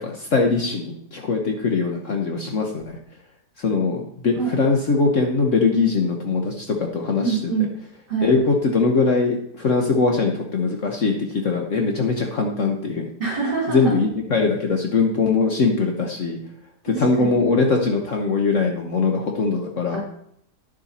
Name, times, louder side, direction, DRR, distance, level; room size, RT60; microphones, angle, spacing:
voice 1, 0.0-3.0 3.6-7.5 8.2-13.1 13.7-16.4 16.8-20.0, left 4 dB, 55° left, 2 dB, 1.3 m, -21 dB
voice 2, 7.2-7.7 8.1-8.3 13.2-13.9 16.9-17.5 19.9-20.0, right 5 dB, 30° right, -4 dB, 3.5 m, -25 dB
10.0 x 7.0 x 4.3 m, 0.69 s
omnidirectional pair, 1.7 m